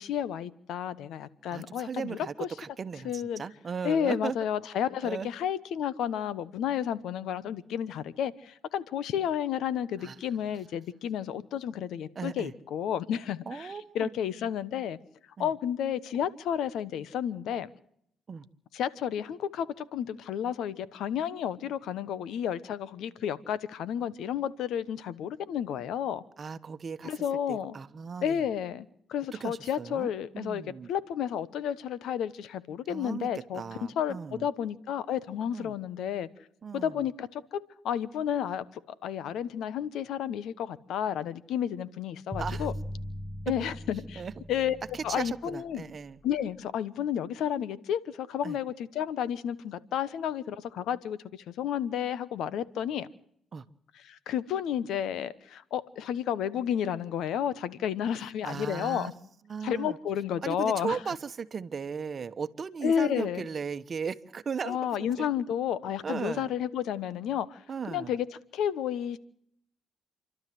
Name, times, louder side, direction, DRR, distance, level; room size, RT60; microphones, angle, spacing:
voice 1, 0.0-2.5 3.0-3.4 3.8-15.0 15.4-17.7 18.7-26.2 27.0-27.8 28.2-30.6 30.9-36.3 36.7-38.7 39.0-42.7 43.5-44.2 44.5-44.8 45.0-45.9 46.2-53.1 54.1-59.1 59.6-61.0 62.8-63.4 64.6-67.6 67.9-68.3 68.5-69.2, left 9 dB, 80° left, 1.1 m, -31 dB
voice 2, 1.5-4.4 5.0-5.3 10.0-10.2 12.1-12.5 13.5-14.1 15.4-15.5 18.3-18.5 26.4-28.4 29.4-30.1 30.3-30.9 32.9-34.5 35.5-35.7 36.6-37.1 42.4-42.7 44.2-44.3 44.9-46.2 48.4-48.6 53.5-53.6 58.4-59.1 59.5-60.0 60.4-65.3 66.0-66.5 67.7-68.2, right 6 dB, 45° right, 1.2 m, -37 dB
sound 1, 42.3-46.4, equal, 10° left, 1.9 m, -39 dB
29.0 x 12.0 x 7.7 m
cardioid pair, 90°, 0 cm